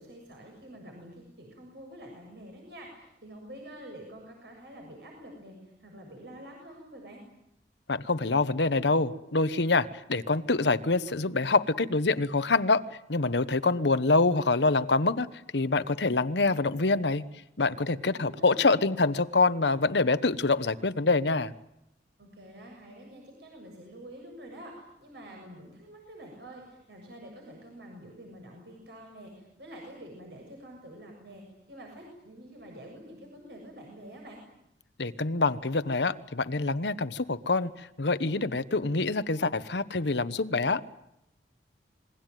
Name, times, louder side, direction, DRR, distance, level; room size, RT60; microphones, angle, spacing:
voice 1, 0.0-7.2 17.9-18.7 22.2-34.4, right 1 dB, 65° right, 1 dB, 7.2 m, -47 dB
voice 2, 7.9-12.8 13.1-15.3 15.5-17.2 17.6-21.5 35.0-40.8, left 3 dB, 75° left, 13 dB, 1.1 m, -26 dB
27.5 x 22.0 x 9.2 m, 0.82 s
head